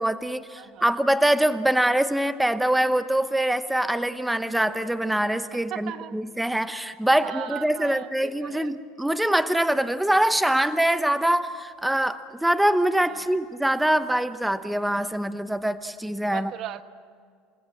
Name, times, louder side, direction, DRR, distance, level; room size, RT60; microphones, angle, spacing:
voice 1, 0.0-16.5, right 1 dB, 5° right, 12 dB, 0.9 m, -24 dB
voice 2, 5.5-6.2 7.2-8.7 13.1-13.3 16.3-16.8, right 11 dB, 55° right, 11 dB, 1.2 m, -37 dB
29.0 x 19.0 x 7.5 m, 2.2 s
supercardioid pair, 95°, 0 cm